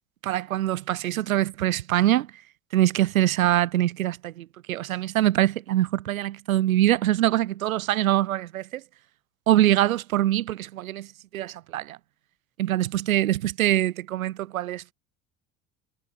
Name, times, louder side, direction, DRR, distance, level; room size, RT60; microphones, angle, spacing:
voice 1, 0.2-2.3 2.7-8.8 9.5-11.1 11.3-12.0 12.6-14.8, right 14 dB, 80° right, 0.8 m, -24 dB
figure-of-eight pair, 60°, 41 cm